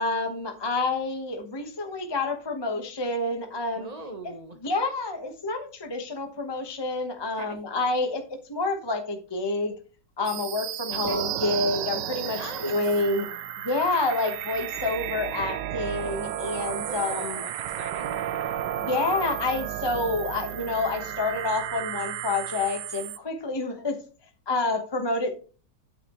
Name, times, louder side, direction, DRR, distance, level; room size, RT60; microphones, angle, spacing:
voice 1, 0.0-3.9 4.2-4.3 4.6-9.7 10.2-13.3 13.6-17.4 18.8-24.0 24.5-25.3, left 2 dB, 15° left, 4 dB, 1.0 m, -28 dB
voice 2, 3.7-4.6 7.3-7.6 10.9-11.2 12.3-12.9 16.7-18.2, right 2 dB, 25° right, 7 dB, 1.2 m, -40 dB
sound 1, 10.3-23.2, right 11 dB, 75° right, 1.3 m, -33 dB
12.0 x 6.4 x 3.1 m, 0.37 s
omnidirectional pair, 1.9 m